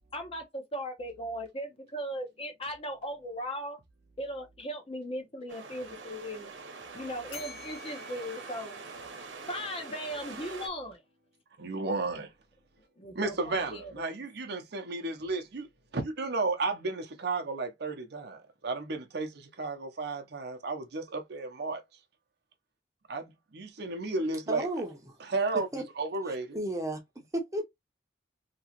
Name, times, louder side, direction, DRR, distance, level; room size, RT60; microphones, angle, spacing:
voice 1, 0.1-3.8 4.2-6.5 6.9-8.8 9.5-11.0 13.0-13.9, equal, 30° left, 0.9 m, -38 dB
sound 1, 5.5-10.7, right 4 dB, 90° right, 0.9 m, -44 dB
Bell, 7.3-9.6, left 6 dB, 65° left, 1.1 m, -50 dB
voice 2, 11.6-12.3 13.1-15.7 15.9-21.8 23.1-24.7 25.2-25.7 26.0-26.6, right 3 dB, 60° right, 0.7 m, -33 dB
voice 3, 24.5-25.0 25.5-25.8 26.3-27.0 27.3-27.6, right 1 dB, 15° right, 0.8 m, -33 dB
2.9 x 2.8 x 2.9 m
head